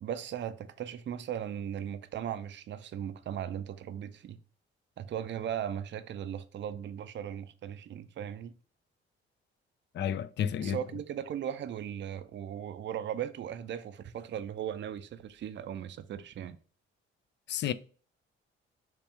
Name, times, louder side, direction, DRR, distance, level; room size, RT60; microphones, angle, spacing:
voice 1, 0.0-4.4 5.0-8.5 10.6-16.6, right 9 dB, 40° right, 0.5 m, -37 dB
voice 2, 9.9-10.8 17.5-17.7, left 9 dB, 40° left, 0.4 m, -31 dB
3.3 x 2.9 x 3.2 m
hypercardioid pair, 40°, 30 cm